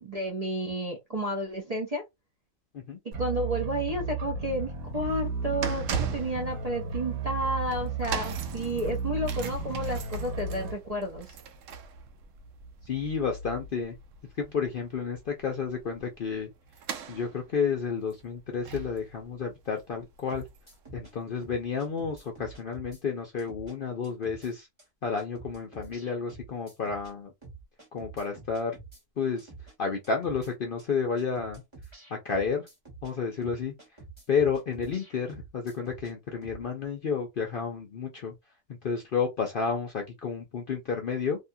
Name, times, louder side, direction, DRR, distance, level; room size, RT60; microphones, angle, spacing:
voice 1, 0.0-2.0 3.2-11.3, equal, 45° right, 0.5 m, -31 dB
sound 1, 3.1-10.7, right 4 dB, 85° right, 1.2 m, -34 dB
sound 2, 4.5-20.9 21.1-21.4 22.2-22.3, right 6 dB, 70° right, 0.9 m, -40 dB
voice 2, 12.9-14.0 14.4-16.5 17.1-20.5 20.9-24.7 25.0-27.3 27.9-28.7 29.2-29.5 29.8-31.6 32.1-32.7 33.0-33.7 34.3-38.3 38.7-41.4, left 5 dB, 55° left, 0.6 m, -31 dB
sound 3, 20.3-21.1 21.4-23.0 23.4-23.7 24.0-24.5 24.8-24.9 25.2-27.1 27.4-29.0 29.4-29.7 30.0-30.5 30.8-30.9 31.2-33.1 33.4-36.1 36.4-36.6, right 3 dB, 20° right, 1.2 m, -48 dB
2.7 x 2.3 x 2.6 m
omnidirectional pair, 1.4 m